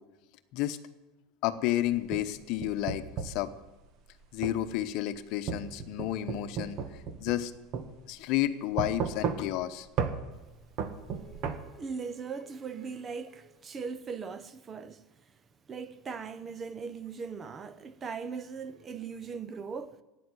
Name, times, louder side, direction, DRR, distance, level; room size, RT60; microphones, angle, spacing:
voice 1, 1.4-3.5 4.3-6.8 7.2-7.5 8.1-9.9, left 14 dB, 55° left, 1.0 m, -31 dB
sound 1, 1.9-3.4 4.4-4.6 5.5-7.5 7.7-7.9 8.8-9.6 10.0-10.2 10.8-11.6, right 6 dB, 45° right, 1.5 m, -33 dB
voice 2, 11.1-15.0 15.7-20.0, right 5 dB, 25° right, 0.7 m, -39 dB
13.0 x 9.4 x 9.6 m
supercardioid pair, 140°, 0 cm